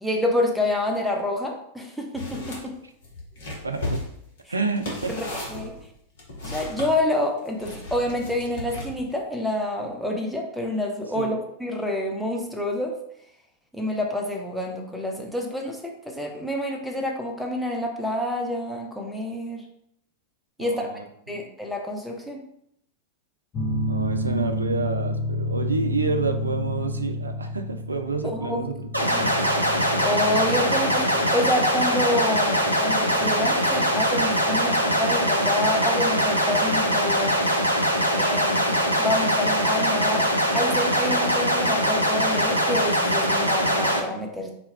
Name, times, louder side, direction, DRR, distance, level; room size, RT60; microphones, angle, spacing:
voice 1, 0.0-2.7 5.1-5.2 5.5-5.7 6.4-12.9 13.7-19.6 20.6-20.9 21.3-22.4 28.2-28.6 29.0-29.3 30.0-37.4 38.2-40.3 40.5-44.5, left 1 dB, ahead, 0 dB, 0.6 m, -28 dB
sound 1, 2.2-2.6 3.0-6.9 7.6-9.1, left 2 dB, 55° left, 1.0 m, -35 dB
voice 2, 3.6-4.0 4.5-5.3 11.1-11.4 20.6-21.4 23.9-28.8, right 4 dB, 80° right, 6 dB, 0.3 m, -29 dB
sound 2, 23.5-34.7, left 1 dB, 30° left, 0.8 m, -31 dB
sound 3, 28.9-44.0, equal, 90° left, 0.4 m, -22 dB
4.1 x 2.3 x 3.4 m, 0.73 s
figure-of-eight pair, 90°, 0 cm